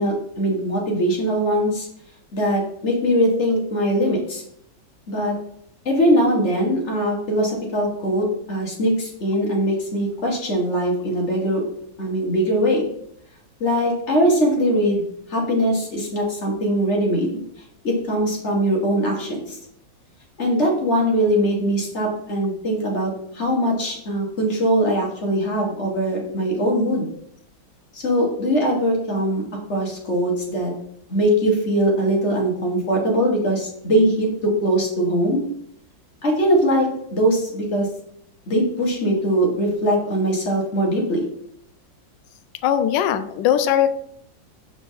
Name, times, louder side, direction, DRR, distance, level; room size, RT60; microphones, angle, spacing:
voice 1, 0.0-1.9 2.3-4.4 5.1-5.3 5.9-11.6 12.0-12.8 13.6-15.0 15.3-17.4 17.8-19.6 20.4-27.1 27.9-29.4 29.7-30.7 31.1-34.3 34.6-35.4 36.2-37.9 38.5-41.2, equal, 40° left, -1 dB, 1.8 m, -21 dB
voice 2, 42.6-44.0, left 10 dB, 75° left, 11 dB, 1.2 m, -20 dB
6.7 x 4.7 x 4.0 m, 0.72 s
omnidirectional pair, 2.1 m